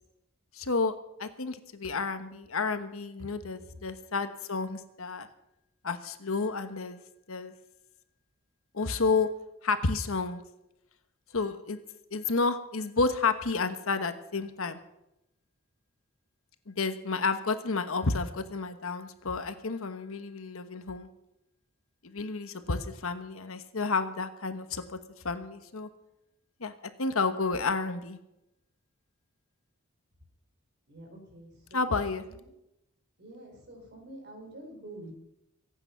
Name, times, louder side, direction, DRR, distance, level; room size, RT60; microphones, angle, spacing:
voice 1, 0.5-5.3 5.8-7.0 7.3-7.5 8.7-9.3 9.6-10.4 11.3-11.8 12.1-14.8 16.7-21.1 22.0-25.0 25.2-25.9 26.6-26.7 27.0-28.2 31.7-32.2, left 4 dB, 70° left, 10 dB, 1.2 m, -31 dB
voice 2, 30.9-32.4 33.2-35.2, right 1 dB, 55° right, 2 dB, 4.5 m, -47 dB
24.0 x 9.0 x 5.8 m, 0.87 s
head